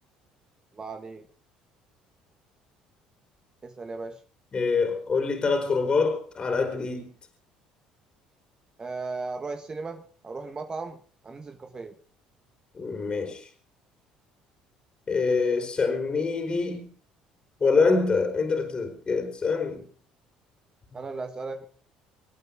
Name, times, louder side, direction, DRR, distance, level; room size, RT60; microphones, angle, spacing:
voice 1, 0.7-1.3 3.6-4.2 8.8-12.0 20.9-21.7, right 3 dB, 30° right, 1.4 m, -36 dB
voice 2, 4.5-7.1 12.7-13.5 15.1-16.9 17.6-19.8, left 4 dB, 35° left, 3.8 m, -25 dB
25.5 x 9.0 x 5.0 m
supercardioid pair, 70°, 3 cm